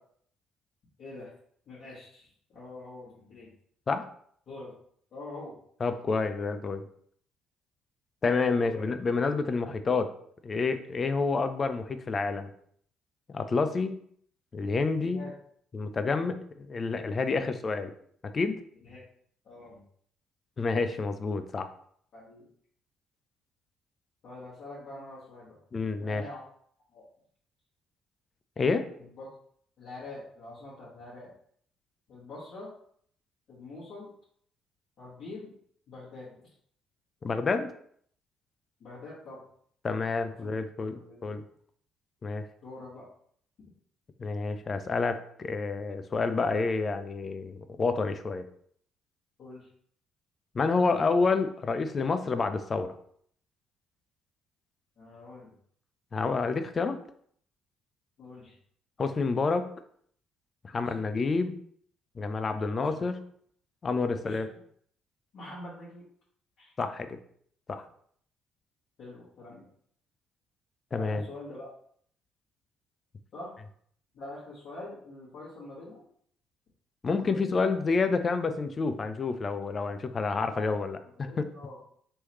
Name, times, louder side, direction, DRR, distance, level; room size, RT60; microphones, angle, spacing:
voice 1, 1.0-1.3 1.7-2.3 2.5-3.5 4.5-4.7 5.1-5.5 8.6-8.9 15.0-15.3 17.2-17.5 18.8-19.0 19.4-19.8 22.1-22.4 24.2-25.6 26.0-26.4 26.9-27.0 29.2-29.3 29.8-31.3 32.1-32.7 33.5-34.1 35.0-35.5 35.9-36.3 38.8-39.4 40.4-40.5 41.0-41.2 42.6-43.0 49.4-49.7 55.0-55.5 58.2-58.5 60.7-61.0 62.8-62.9 64.2-64.6 65.3-66.0 66.6-66.7 69.0-69.6 70.9-71.7 73.3-73.5 74.1-76.0 77.0-77.6 80.4-80.6 81.0-81.9, left 2 dB, 55° left, -8 dB, 1.4 m, -45 dB
voice 2, 5.8-6.8 8.2-10.1 10.4-12.5 13.3-14.0 14.5-15.2 15.7-17.9 18.3-18.6 20.6-21.7 25.7-26.3 28.6-28.9 37.2-37.7 39.8-41.4 42.2-42.4 44.2-48.4 50.5-53.0 56.1-57.0 59.0-59.7 60.6-61.6 62.2-63.2 63.8-64.5 66.8-67.2 67.7-67.8 70.9-71.2 77.0-81.5, left 4 dB, 35° left, 9 dB, 0.4 m, -29 dB
3.2 x 3.0 x 3.0 m, 0.63 s
figure-of-eight pair, 50°, 0 cm